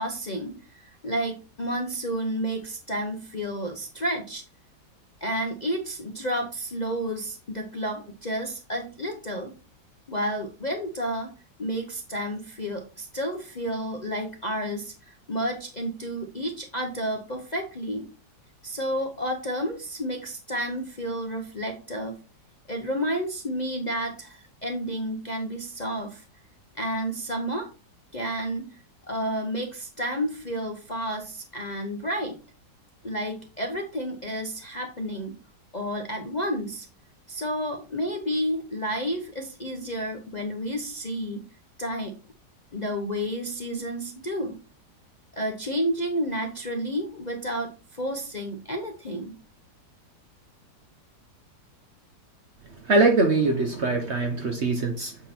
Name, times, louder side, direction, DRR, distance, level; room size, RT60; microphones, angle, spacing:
voice 1, 0.0-4.4 5.2-9.5 10.1-11.3 11.6-18.1 18.6-22.2 22.7-26.2 26.7-27.7 28.1-28.7 29.0-32.4 33.0-35.4 35.7-36.9 37.3-41.4 41.8-42.2 42.7-44.6 45.3-49.4, equal, 35° left, 0.7 m, -31 dB
voice 2, 52.8-55.2, right 3 dB, 50° right, 0.9 m, -22 dB
8.1 x 3.8 x 4.3 m
omnidirectional pair, 1.9 m